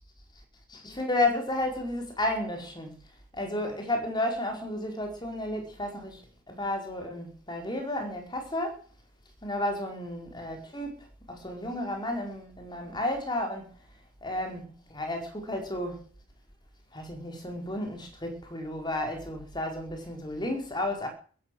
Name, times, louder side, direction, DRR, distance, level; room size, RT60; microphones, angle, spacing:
voice 1, 0.7-2.9 3.3-6.2 6.5-8.8 9.4-13.7 14.2-16.0 16.9-21.1, left 1 dB, 20° left, 4.6 m, -32 dB
15.0 x 11.0 x 7.9 m
head